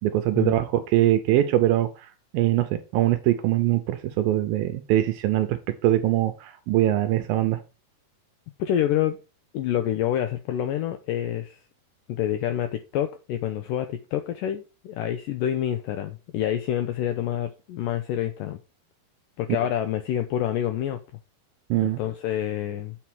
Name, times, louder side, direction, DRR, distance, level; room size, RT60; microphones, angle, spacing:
voice 1, 0.0-2.1 2.3-7.6 21.7-22.0, right 13 dB, 80° right, 9 dB, 2.1 m, -22 dB
voice 2, 8.6-9.2 9.5-11.6 12.1-18.6 19.4-21.0 21.8-23.0, left 11 dB, 90° left, 8 dB, 1.9 m, -27 dB
7.4 x 4.8 x 6.0 m, 0.31 s
omnidirectional pair, 4.6 m